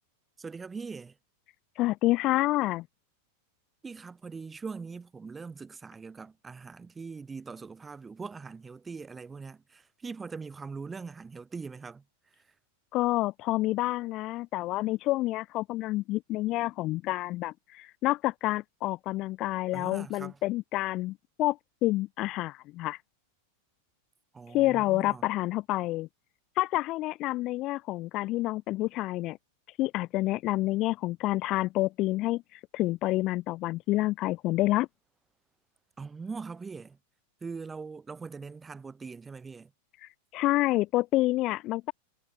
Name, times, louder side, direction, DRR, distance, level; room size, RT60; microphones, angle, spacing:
voice 1, 0.4-1.1 3.8-12.0 19.7-20.4 24.3-25.2 36.0-37.0 37.4-39.7, right 4 dB, 15° right, 6.8 m, -41 dB
voice 2, 1.8-2.9 12.9-23.0 24.5-26.1 26.6-29.4 29.8-34.9 40.0-41.9, left 18 dB, 40° left, 2.6 m, -28 dB
figure-of-eight pair, 90°, 0 cm